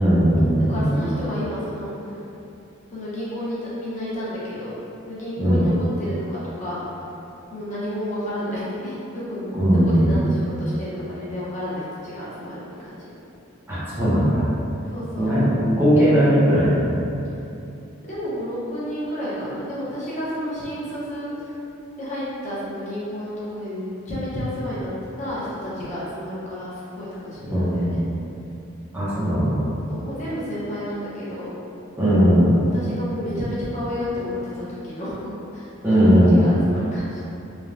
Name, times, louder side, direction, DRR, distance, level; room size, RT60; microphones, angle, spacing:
voice 1, 0.0-0.9 5.4-5.6 9.5-10.2 13.7-14.5 15.2-17.0 27.5-27.9 28.9-29.6 32.0-32.5 35.8-36.4, equal, 10° right, -12 dB, 0.6 m, -18 dB
voice 2, 0.7-2.1 2.9-4.7 5.0-6.8 7.5-9.5 9.8-13.1 14.9-15.4 18.0-21.5 22.0-24.9 25.2-28.0 29.9-31.5 32.7-35.7 36.3-37.3, left 1 dB, 35° left, -10 dB, 0.7 m, -31 dB
3.2 x 2.2 x 2.5 m, 2.8 s
head